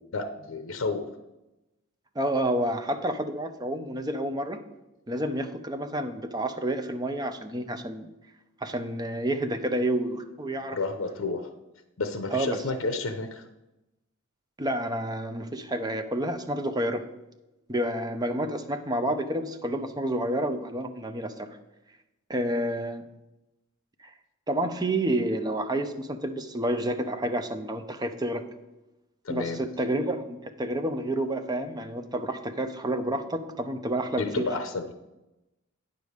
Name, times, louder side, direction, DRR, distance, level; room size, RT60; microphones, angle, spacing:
voice 1, 0.1-1.1 10.6-11.5 12.0-13.4 29.2-29.6 34.1-34.9, left 3 dB, 75° left, 8 dB, 0.7 m, -31 dB
voice 2, 2.1-4.6 5.1-8.1 8.6-10.8 12.3-12.6 14.6-17.0 17.7-21.5 22.3-23.0 24.5-28.4 29.3-34.4, right 1 dB, 20° right, 7 dB, 0.7 m, -29 dB
9.5 x 5.2 x 6.5 m, 0.98 s
head